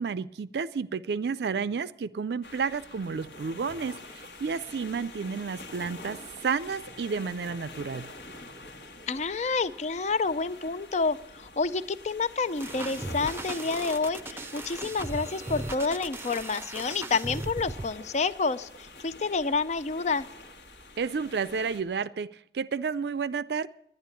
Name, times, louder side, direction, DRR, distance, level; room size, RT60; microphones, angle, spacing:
voice 1, 0.0-8.1 21.0-23.7, right 5 dB, 65° right, 0.4 m, -31 dB
sound 1, 2.4-21.8, left 2 dB, 65° left, 1.6 m, -46 dB
voice 2, 9.1-20.3, left 4 dB, 40° left, 0.5 m, -29 dB
sound 2, 12.6-17.9, right 2 dB, 15° right, 0.6 m, -37 dB
10.5 x 10.5 x 8.2 m
head